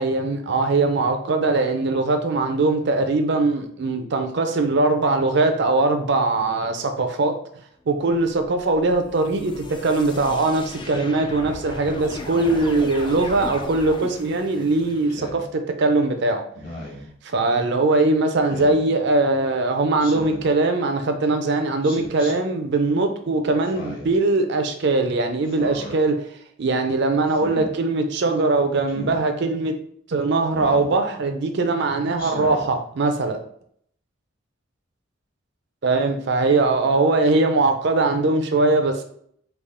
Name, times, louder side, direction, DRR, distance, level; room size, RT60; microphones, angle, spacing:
voice 1, 0.0-7.4 7.9-16.4 17.2-26.2 26.6-29.8 30.1-33.4 35.8-39.0, right 3 dB, 60° right, 6 dB, 0.5 m, -21 dB
sound 1, 8.2-15.2, left 2 dB, 25° left, 0.3 m, -37 dB
Speech synthesizer, 15.1-15.4 16.5-17.1 18.5-18.8 20.0-20.5 21.8-22.3 23.6-24.2 25.4-26.0 27.3-27.7 28.9-29.2 30.5-30.9 32.2-32.7, left 1 dB, 45° left, 1.3 m, -36 dB
3.4 x 2.4 x 3.6 m, 0.66 s
head